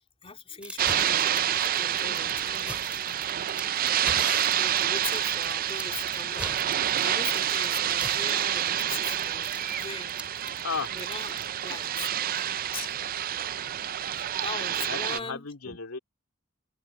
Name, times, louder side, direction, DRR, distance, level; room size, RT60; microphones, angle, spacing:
voice 1, 0.2-3.1 4.5-10.2 10.9-11.4 11.6-12.9 13.3-13.6 14.3-15.8, left 4 dB, 25° left, 3.3 m, -40 dB
sound 1, 0.6-11.8, right 1 dB, 5° right, 2.6 m, -40 dB
sound 2, 0.8-15.2, right 10 dB, 45° right, 0.4 m, -28 dB
voice 2, 10.6-11.0 14.9-16.0, left 5 dB, 80° left, 2.4 m, -34 dB
head